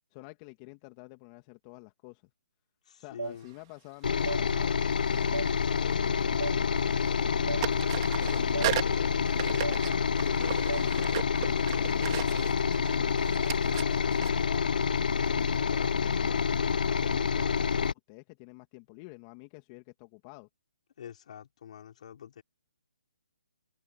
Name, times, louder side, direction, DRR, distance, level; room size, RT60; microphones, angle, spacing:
voice 1, 0.1-2.3 3.0-10.0 10.2-16.4 16.8-20.5, left 27 dB, 25° left, 2.5 m, -49 dB
voice 2, 2.9-3.5 21.0-22.4, left 9 dB, 55° left, 5.3 m, -46 dB
sound 1, 3.2-3.3 4.3-4.4 5.3-5.5 6.4-6.6 7.5-7.6 8.5-8.7 9.6-9.8 10.7-10.8, right 5 dB, 85° right, 0.9 m, -34 dB
sound 2, 3.4-3.6 5.0-6.3 6.6-7.3 7.6-15.3, right 17 dB, 35° right, 4.2 m, -38 dB
sound 3, 4.0-17.9, left 6 dB, 70° left, 1.1 m, -28 dB
hypercardioid pair, 145°, 5 cm